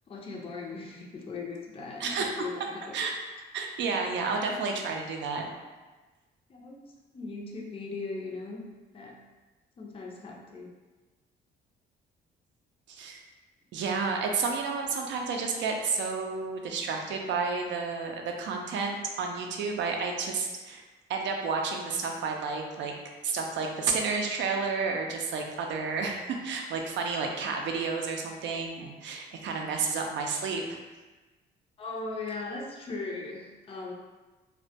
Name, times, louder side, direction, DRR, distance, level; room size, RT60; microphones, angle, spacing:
voice 1, 0.1-2.9 6.5-6.8 7.1-8.6 8.9-9.2 9.8-10.7 31.8-33.9, left 3 dB, 30° left, -1 dB, 0.4 m, -38 dB
voice 2, 3.5-5.5 12.9-13.2 13.7-20.8 21.1-22.9 23.2-30.6, right 4 dB, 70° right, 2 dB, 0.4 m, -31 dB
2.1 x 2.1 x 2.7 m, 1.2 s
cardioid pair, 90°, 20 cm